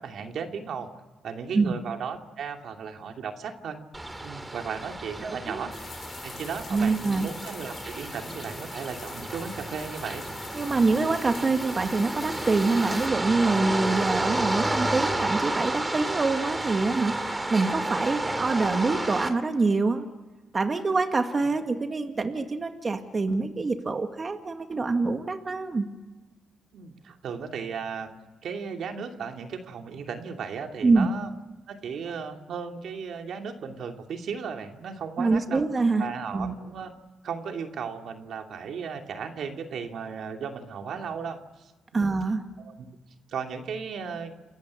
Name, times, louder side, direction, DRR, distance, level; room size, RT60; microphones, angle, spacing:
voice 1, 0.0-3.8 4.2-5.7 6.2-10.2 10.8-11.0 26.7-28.1 28.4-31.3 31.7-35.6 36.0-36.9 37.2-42.1 42.6-42.9 43.3-44.3, right 6 dB, 75° right, 4 dB, 2.6 m, -36 dB
sound 1, 3.9-19.3, right 1 dB, 20° right, 3.0 m, -31 dB
voice 2, 5.2-5.6 6.7-7.3 10.5-20.1 20.5-25.9 30.8-31.1 35.2-36.1 36.3-36.5 41.9-42.4, right 3 dB, 35° right, 6 dB, 2.0 m, -25 dB
sound 2, 5.7-13.1, left 7 dB, 65° left, 2.2 m, -45 dB
29.5 x 14.5 x 9.9 m, 1.2 s
cardioid pair, 80°, 0 cm